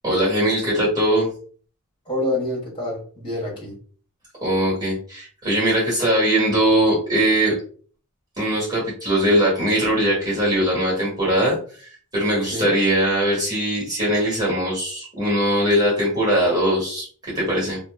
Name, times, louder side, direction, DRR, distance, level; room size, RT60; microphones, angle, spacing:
voice 1, 0.0-1.3 4.4-7.5 8.4-17.8, right 1 dB, 20° right, -6 dB, 1.5 m, -21 dB
voice 2, 2.0-3.8 12.4-12.7, left 1 dB, 25° left, -4 dB, 1.4 m, -27 dB
2.8 x 2.1 x 3.4 m, 0.43 s
head